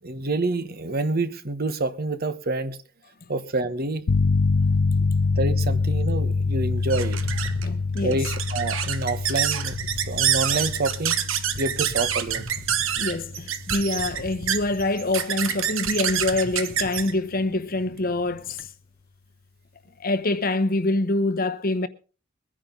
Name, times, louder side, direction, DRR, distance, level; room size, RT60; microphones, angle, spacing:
voice 1, 0.0-2.8 3.3-4.0 5.0-5.1 5.4-7.2 8.0-11.2 11.6-12.5, right 2 dB, 45° right, 1.2 m, -27 dB
sound 1, 4.1-14.6, left 4 dB, 90° left, 0.6 m, -26 dB
sound 2, 5.7-18.7, right 9 dB, 70° right, 1.3 m, -28 dB
sound 3, 7.1-8.4 9.2-9.4 9.7-10.9 11.5-13.2 13.7-15.1 15.5-15.6 15.9-17.1, equal, 25° left, 1.2 m, -40 dB
voice 2, 7.6-8.2 13.0-18.7 20.0-21.9, left 2 dB, 45° left, 1.0 m, -25 dB
22.5 x 10.0 x 3.8 m
head